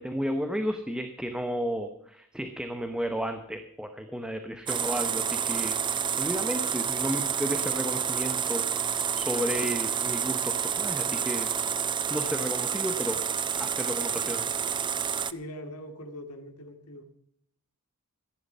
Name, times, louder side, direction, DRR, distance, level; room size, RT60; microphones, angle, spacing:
voice 1, 0.0-8.7 9.1-11.5 12.1-13.2 13.6-14.5, equal, 5° right, 7 dB, 0.9 m, -33 dB
sound 1, 4.7-15.3, right 7 dB, 20° right, 0.4 m, -29 dB
voice 2, 15.2-17.0, left 1 dB, 85° left, 6 dB, 2.3 m, -42 dB
14.5 x 11.0 x 5.5 m, 0.70 s
head